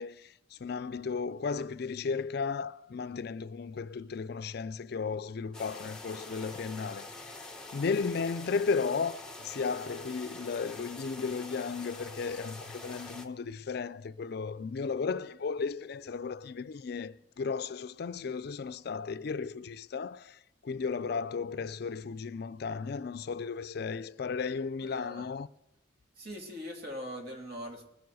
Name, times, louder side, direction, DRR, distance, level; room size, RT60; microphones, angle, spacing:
voice 1, 0.0-7.4 7.7-25.5, left 5 dB, 55° left, 0.4 m, -35 dB
sound 1, 5.5-13.3, left 2 dB, 5° left, 1.0 m, -45 dB
voice 2, 24.8-25.3 26.2-27.8, equal, 50° right, 2.4 m, -41 dB
21.0 x 7.1 x 6.2 m
head